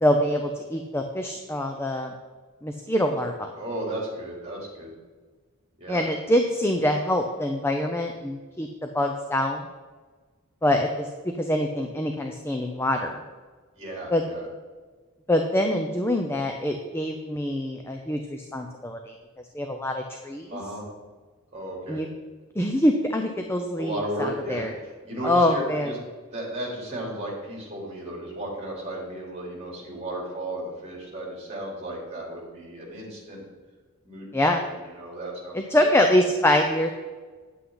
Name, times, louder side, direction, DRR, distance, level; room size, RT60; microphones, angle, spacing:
voice 1, 0.0-2.1 2.6-3.5 5.9-9.6 10.6-11.1 11.4-13.2 14.1-14.2 15.3-19.1 19.5-20.6 21.9-22.1 22.6-24.7 25.2-25.9 34.3-34.6 35.5-36.9, left 1 dB, 10° left, 4 dB, 0.5 m, -25 dB
voice 2, 3.6-5.0 5.8-6.1 13.8-14.5 20.5-20.9 21.5-22.0 23.8-26.0 26.3-33.5 34.0-35.9, right 1 dB, 30° right, -3 dB, 3.4 m, -34 dB
9.9 x 8.0 x 3.9 m, 1.4 s
head